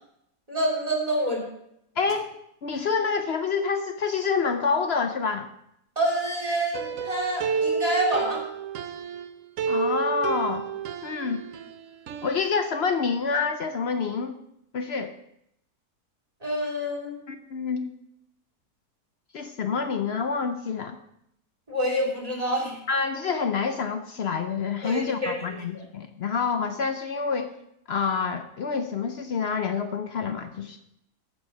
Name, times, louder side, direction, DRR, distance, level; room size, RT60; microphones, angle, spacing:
voice 1, 0.5-1.4 6.0-8.4 16.4-17.2 21.7-22.8 24.8-25.8, right 1 dB, 25° right, -1 dB, 2.9 m, -27 dB
voice 2, 2.0-2.3 2.6-5.5 9.7-10.7 11.0-11.4 12.2-14.4 14.7-15.1 17.3-17.9 19.3-21.0 22.9-27.5 27.9-30.8, left 5 dB, 55° left, 8 dB, 0.7 m, -27 dB
sound 1, 6.7-9.3 9.6-11.7 12.1-12.4, right 6 dB, 65° right, 1.0 m, -30 dB
14.0 x 4.7 x 5.4 m, 0.77 s
omnidirectional pair, 1.6 m